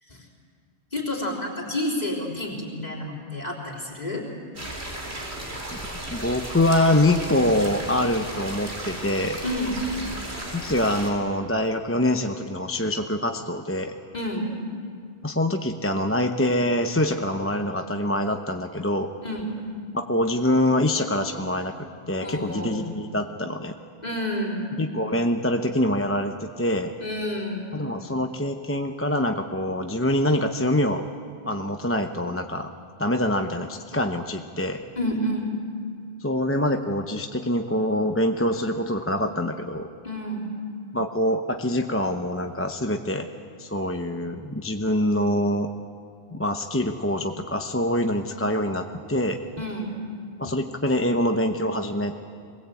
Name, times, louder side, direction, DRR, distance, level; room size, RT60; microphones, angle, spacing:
voice 1, 0.9-4.2 9.4-9.8 14.1-14.5 19.2-19.5 22.2-23.0 24.0-24.7 27.0-27.7 35.0-35.6 40.0-40.5 49.6-50.0, left 1 dB, 40° left, -2 dB, 4.0 m, -29 dB
sound 1, 4.5-11.1, right 1 dB, 70° right, 3.9 m, -35 dB
voice 2, 6.1-9.4 10.5-13.9 15.2-19.1 19.9-23.7 24.8-26.9 27.7-31.0 31.5-32.7 33.0-34.8 36.2-39.9 40.9-43.3 43.6-45.7 46.3-49.4 50.4-52.2, left 1 dB, 15° left, 5 dB, 0.8 m, -25 dB
22.0 x 20.0 x 8.4 m, 2.2 s
omnidirectional pair, 1.1 m